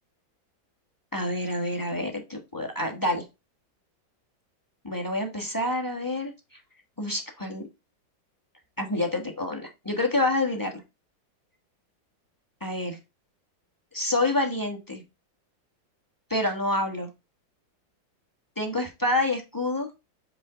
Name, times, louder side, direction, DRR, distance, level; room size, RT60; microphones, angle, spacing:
voice 1, 1.1-3.2 4.8-6.3 7.0-7.6 8.8-10.7 12.6-13.0 13.9-15.0 16.3-17.1 18.6-19.9, left 2 dB, 10° left, 6 dB, 1.1 m, -27 dB
7.8 x 3.8 x 3.8 m, 0.24 s
omnidirectional pair, 2.1 m